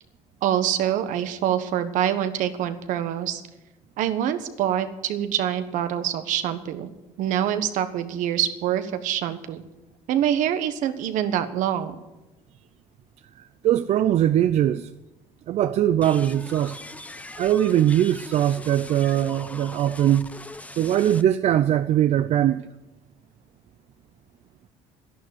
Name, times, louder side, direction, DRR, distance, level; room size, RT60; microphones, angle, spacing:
voice 1, 0.4-3.4 4.0-6.9 7.2-9.6 10.1-11.9, right 10 dB, 70° right, 1.3 m, -25 dB
voice 2, 13.4-14.9 15.5-16.8 17.4-20.3 20.8-22.7, right 11 dB, 55° right, 0.6 m, -21 dB
sound 1, 16.0-21.2, left 2 dB, 10° left, 0.8 m, -40 dB
11.5 x 11.0 x 8.0 m
supercardioid pair, 85°, 14 cm